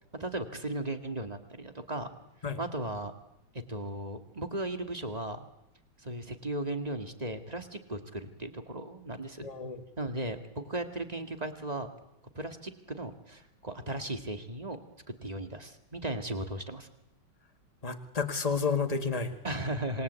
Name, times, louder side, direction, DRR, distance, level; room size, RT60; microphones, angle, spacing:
voice 1, 0.2-2.1 2.6-3.1 3.7-5.4 6.0-9.5 10.0-11.9 12.3-14.8 15.2-16.9 19.4-20.0, right 1 dB, 20° right, 6 dB, 2.0 m, -36 dB
voice 2, 9.4-9.8 17.8-19.4, left 5 dB, 20° left, 7 dB, 1.8 m, -31 dB
27.0 x 21.0 x 8.3 m, 0.87 s
omnidirectional pair, 2.2 m